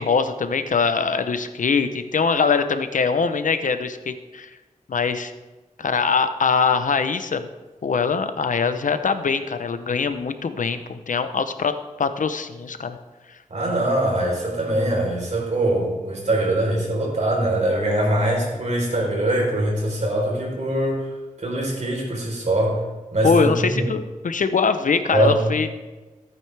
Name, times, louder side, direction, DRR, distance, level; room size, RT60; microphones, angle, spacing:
voice 1, 0.0-4.5 4.9-5.3 5.8-7.5 7.8-13.0 23.2-25.7, left 5 dB, 75° left, 10 dB, 0.7 m, -22 dB
voice 2, 13.5-21.0 21.4-22.8 23.1-23.9 25.1-25.4, right 1 dB, 60° right, -1 dB, 3.8 m, -22 dB
15.5 x 8.9 x 3.4 m, 1.2 s
wide cardioid pair, 80°, 13 cm